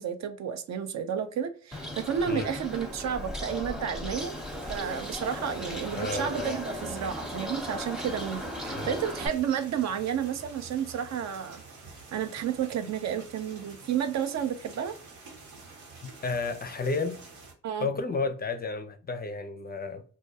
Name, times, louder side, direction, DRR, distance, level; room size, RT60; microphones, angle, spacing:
voice 1, 0.0-4.3 4.7-11.6 12.1-15.0 17.6-17.9, right 8 dB, 55° right, 0.5 m, -31 dB
Bird, 1.7-9.3, equal, ahead, 0.7 m, -37 dB
sound 1, 4.2-17.5, right 3 dB, 85° right, 1.1 m, -49 dB
voice 2, 5.9-6.6 8.7-9.0 16.2-17.2 17.8-20.0, left 4 dB, 30° left, 0.4 m, -32 dB
2.2 x 2.2 x 2.7 m
hypercardioid pair, 45°, 34 cm